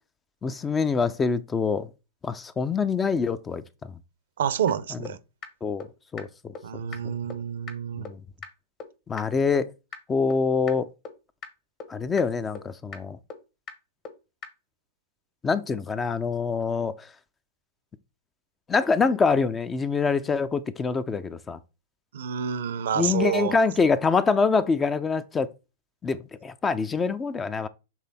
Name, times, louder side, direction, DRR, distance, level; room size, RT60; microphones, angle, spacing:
voice 1, 0.4-1.9 2.2-3.6 5.6-5.9 6.1-6.5 7.0-7.1 8.0-8.2 9.1-9.7 10.1-10.9 11.9-13.2 15.4-17.1 18.7-21.6 23.0-25.5 26.0-27.7, left 5 dB, 15° left, 0.5 m, -25 dB
voice 2, 4.4-5.2 6.6-8.1 22.1-23.6, right 8 dB, 65° right, 0.6 m, -28 dB
sound 1, 4.7-4.8 5.0-5.1 5.4-5.5 5.8-5.9 6.2-6.3 6.5-6.6 6.9-7.0 7.3-7.4 7.7-7.8 8.0-8.1 8.4-8.5 8.8-8.9 9.2-9.3 9.5-9.6 9.9-10.0 10.3-10.4 10.7-10.8 11.0-11.1 11.4-11.5 11.8-11.9 12.2-12.3 12.5-12.6 12.9-13.0 13.3-13.4 13.7-13.8 14.0-14.1 14.4-14.5, left 5 dB, 35° left, 1.2 m, -38 dB
7.3 x 3.3 x 4.1 m
figure-of-eight pair, 105°, 0 cm